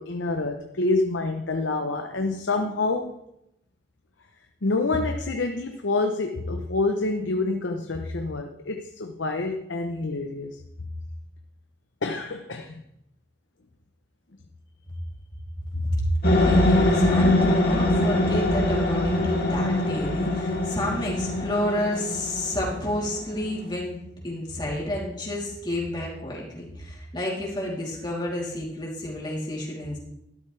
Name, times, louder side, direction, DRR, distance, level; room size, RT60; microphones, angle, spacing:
voice 1, 0.0-3.2 4.6-10.6 12.0-12.8 15.7-15.9, left 3 dB, 90° left, 4 dB, 0.9 m, -27 dB
sound 1, 16.2-23.5, left 1 dB, 55° left, 2.5 m, -23 dB
voice 2, 16.3-30.0, left 1 dB, 25° left, -4 dB, 3.3 m, -30 dB
12.5 x 12.0 x 3.4 m, 0.81 s
head